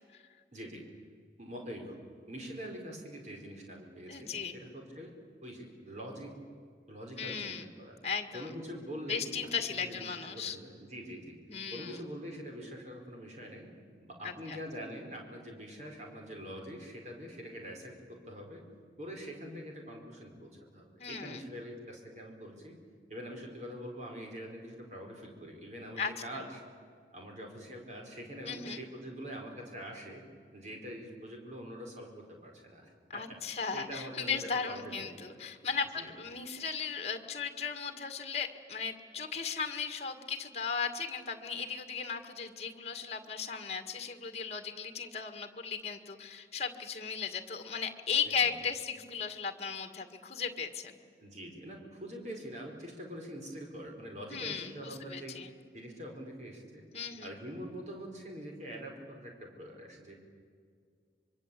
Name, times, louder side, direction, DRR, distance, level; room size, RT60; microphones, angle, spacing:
voice 1, 0.5-0.8 1.4-2.0 2.3-5.1 5.4-6.3 6.9-8.0 8.3-9.4 9.8-11.4 11.7-13.7 14.0-18.6 19.0-22.7 23.1-26.6 27.1-30.2 30.5-33.4 33.7-35.4 36.0-36.1 48.2-48.4 51.2-55.4 55.7-56.8 57.2-60.1, equal, 40° right, 1 dB, 4.6 m, -44 dB
voice 2, 4.1-4.6 7.2-7.7 8.0-8.5 9.1-10.6 11.5-12.0 14.2-14.6 21.0-21.4 26.0-26.4 28.5-28.8 33.1-51.0 54.3-55.5 56.9-57.3, left 6 dB, 35° left, 7 dB, 2.0 m, -36 dB
25.5 x 24.0 x 8.5 m, 2.1 s
head